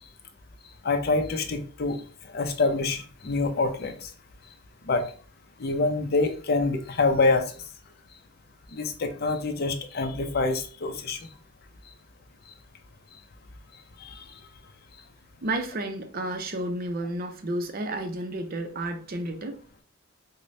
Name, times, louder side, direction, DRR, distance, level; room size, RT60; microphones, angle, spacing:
voice 1, 0.8-2.0 2.3-3.9 4.9-5.1 5.6-7.4 8.7-11.2, left 3 dB, 50° left, 0.5 m, -25 dB
voice 2, 15.4-19.6, right 1 dB, 50° right, 0.5 m, -31 dB
4.9 x 2.1 x 2.6 m
head